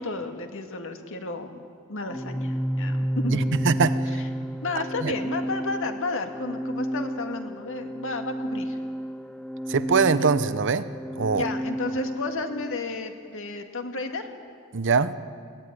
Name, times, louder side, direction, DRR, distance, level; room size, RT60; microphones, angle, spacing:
voice 1, 0.0-1.6 1.9-3.5 4.6-8.8 11.3-14.3, left 3 dB, 60° left, 5 dB, 1.9 m, -32 dB
Organ, 2.1-12.8, equal, 5° left, 0.5 m, -31 dB
voice 2, 3.3-4.2 5.0-5.1 9.7-10.9 11.2-11.5 14.7-15.1, right 5 dB, 55° right, 13 dB, 0.8 m, -23 dB
22.5 x 17.5 x 9.9 m, 2.2 s
head